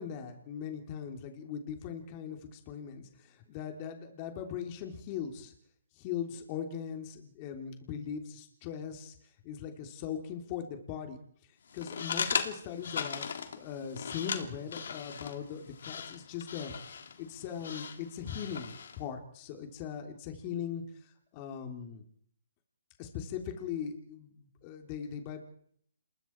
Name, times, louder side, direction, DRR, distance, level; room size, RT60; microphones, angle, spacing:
voice 1, 0.0-5.5 5.9-9.1 9.4-11.2 11.7-16.7 17.2-22.0 23.0-25.4, left 8 dB, 30° left, 4 dB, 3.3 m, -40 dB
sound 1, 11.7-19.0, left 6 dB, 65° left, 3.1 m, -38 dB
28.5 x 22.5 x 4.7 m, 0.63 s
hypercardioid pair, 155°, 0 cm